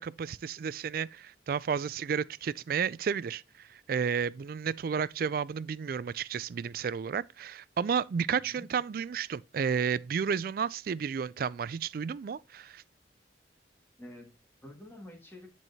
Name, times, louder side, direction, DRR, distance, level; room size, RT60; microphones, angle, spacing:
voice 1, 0.0-12.8, right 6 dB, 50° right, 0.3 m, -32 dB
voice 2, 8.3-8.7 14.0-15.5, left 1 dB, 10° left, 1.9 m, -49 dB
11.0 x 4.6 x 2.8 m
head